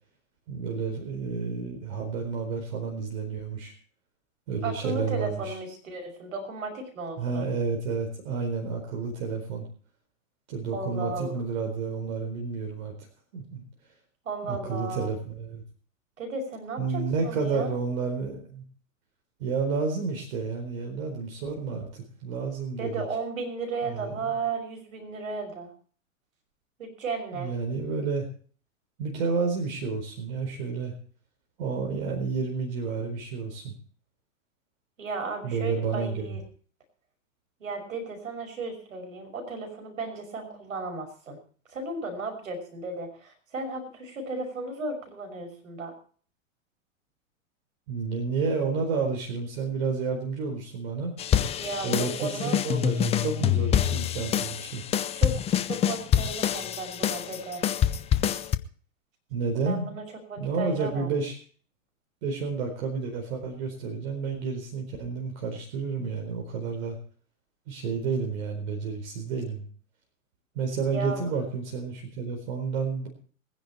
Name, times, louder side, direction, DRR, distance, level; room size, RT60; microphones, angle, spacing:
voice 1, 0.5-3.7 4.5-5.5 7.2-9.7 10.5-12.9 13.3-13.6 14.4-15.6 16.8-18.6 19.4-23.1 23.8-24.3 27.3-28.3 29.0-30.9 31.6-33.7 35.4-36.3 47.9-51.1 51.8-54.8 59.3-59.9 60.4-61.3 62.2-67.0 67.7-69.6 70.5-73.1, right 5 dB, 55° right, 2 dB, 4.4 m, -30 dB
voice 2, 4.6-7.5 10.7-11.4 14.2-15.1 16.2-17.8 22.8-25.7 26.8-27.5 35.0-36.4 37.6-41.4 41.7-45.9 51.6-52.6 53.7-53.9 55.1-57.6 59.7-61.1 70.9-71.3, right 3 dB, 75° right, 4 dB, 5.9 m, -35 dB
sound 1, 51.2-58.6, left 10 dB, 15° left, 0.6 m, -26 dB
21.5 x 10.5 x 4.4 m, 0.43 s
hypercardioid pair, 105°, 40 cm